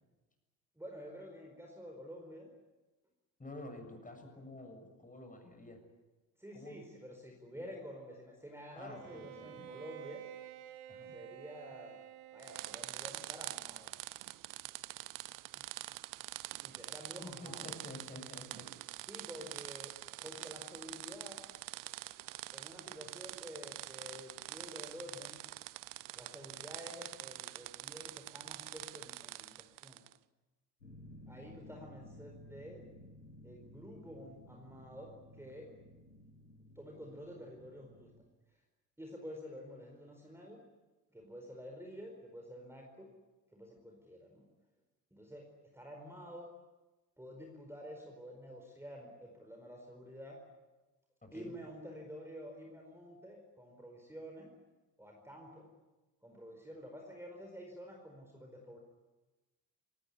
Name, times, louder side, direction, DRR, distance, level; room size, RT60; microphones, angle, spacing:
voice 1, 0.8-2.5 6.4-10.2 11.1-12.0 12.3-13.9 15.4-15.7 16.6-17.7 19.1-19.9 20.2-21.4 22.5-25.4 26.1-30.0 31.3-32.8 33.4-35.7 36.7-38.1 39.0-40.6 41.1-43.1 43.5-44.5 45.1-46.5 47.2-50.4 51.3-54.5 55.0-55.7 56.2-58.8, equal, 5° right, 1 dB, 4.7 m, -49 dB
voice 2, 3.4-5.8 6.5-6.8 7.5-7.7 8.7-9.7 10.9-11.2 17.2-18.7 19.3-19.5 51.2-51.5, left 1 dB, 15° left, 5 dB, 7.0 m, -50 dB
Bowed string instrument, 8.9-13.3, right 12 dB, 65° right, 2.1 m, -51 dB
sound 1, 12.4-30.2, right 17 dB, 40° right, 0.7 m, -46 dB
sound 2, 30.8-38.2, left 1 dB, 85° left, 2.1 m, -55 dB
25.0 x 19.0 x 9.9 m, 1.2 s
figure-of-eight pair, 55°, 49 cm